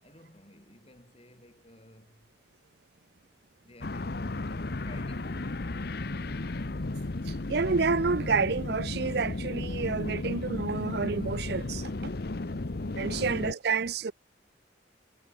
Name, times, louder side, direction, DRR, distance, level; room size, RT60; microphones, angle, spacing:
voice 1, 0.0-2.3 3.6-6.1, left 1 dB, 30° left, 5.6 m, -54 dB
sound 1, 3.8-13.5, left 2 dB, 55° left, 0.9 m, -34 dB
voice 2, 7.3-12.1 13.0-14.1, right 4 dB, 60° right, 0.6 m, -29 dB
head